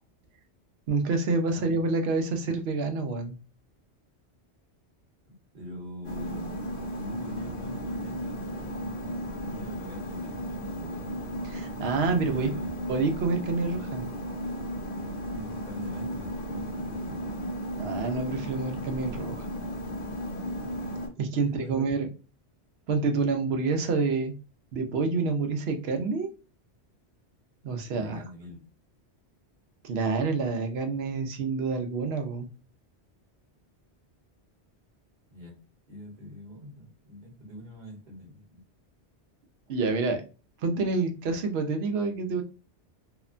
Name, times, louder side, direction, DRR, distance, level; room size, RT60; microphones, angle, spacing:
voice 1, 0.9-3.4 11.4-12.5 12.9-14.1 17.8-19.5 21.2-22.1 22.9-24.3 24.7-26.3 27.6-28.2 29.8-32.5 39.7-40.2 40.6-42.4, right 4 dB, 70° right, 5 dB, 0.8 m, -28 dB
voice 2, 5.2-6.6 6.9-11.4 12.2-12.7 15.3-17.2 21.4-21.8 27.9-28.6 35.3-35.6 35.9-38.6, left 1 dB, 40° right, -2 dB, 1.1 m, -43 dB
sound 1, 6.0-21.1, equal, 55° left, 0.9 m, -35 dB
2.8 x 2.1 x 2.4 m, 0.33 s
omnidirectional pair, 1.1 m